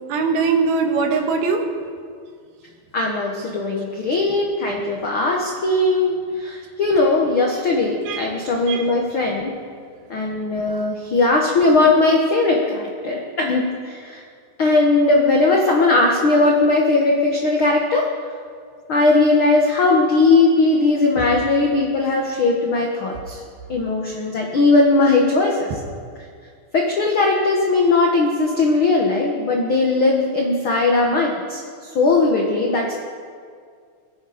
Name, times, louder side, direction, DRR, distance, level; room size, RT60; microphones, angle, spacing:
voice 1, 0.1-1.7 8.0-8.3 8.7-8.9 21.2-21.3 25.7-25.8, right 4 dB, 80° right, 3 dB, 3.2 m, -21 dB
voice 2, 2.9-9.5 10.1-14.2 14.6-18.1 18.9-23.4 23.7-25.7 26.7-31.6 31.9-32.9, left 3 dB, 85° left, 0 dB, 1.1 m, -18 dB
21.5 x 9.4 x 5.1 m, 2.1 s
omnidirectional pair, 4.4 m